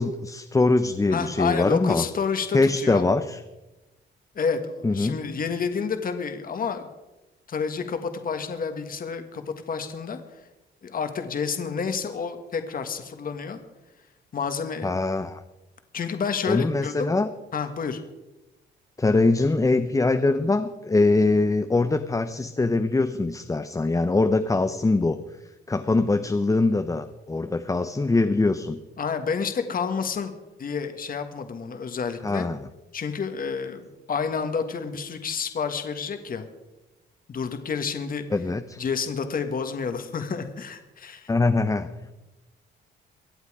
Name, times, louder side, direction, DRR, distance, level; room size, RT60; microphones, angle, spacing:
voice 1, 0.0-2.0 2.5-3.4 4.8-5.2 14.8-15.4 16.5-17.3 19.0-25.2 25.7-28.8 32.2-32.7 38.3-38.8 41.3-41.9, left 3 dB, 15° left, 8 dB, 0.8 m, -23 dB
voice 2, 1.1-3.1 4.3-6.9 7.5-10.2 10.8-13.6 14.3-14.9 15.9-17.1 17.5-18.0 29.0-30.3 30.6-32.5 32.9-33.8 34.1-36.5 37.3-38.2 38.8-41.3, left 5 dB, 45° left, 8 dB, 1.6 m, -29 dB
23.5 x 8.2 x 4.9 m, 1.0 s
cardioid pair, 90°, 20 cm